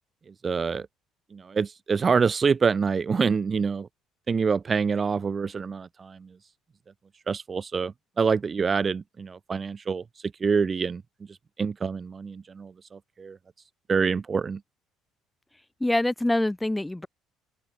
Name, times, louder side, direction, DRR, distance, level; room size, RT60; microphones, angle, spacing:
voice 1, 0.4-0.9 1.3-3.9 4.3-6.3 7.3-10.0 10.4-11.0 11.6-13.4 13.9-14.6, right 5 dB, 35° right, 2.4 m, -26 dB
voice 2, 15.8-17.1, left 1 dB, 10° left, 5.1 m, -25 dB
open air
hypercardioid pair, 65°, 0 cm